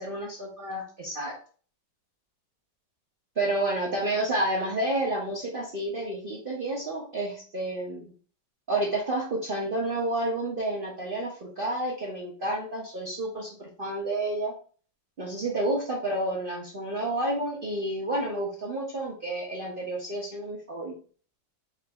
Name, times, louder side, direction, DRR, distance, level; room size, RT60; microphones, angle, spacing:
voice 1, 0.0-1.3 3.4-8.1 8.7-14.5 15.2-20.9, right 1 dB, 40° right, -4 dB, 0.8 m, -30 dB
4.9 x 2.6 x 3.4 m, 0.42 s
omnidirectional pair, 1.9 m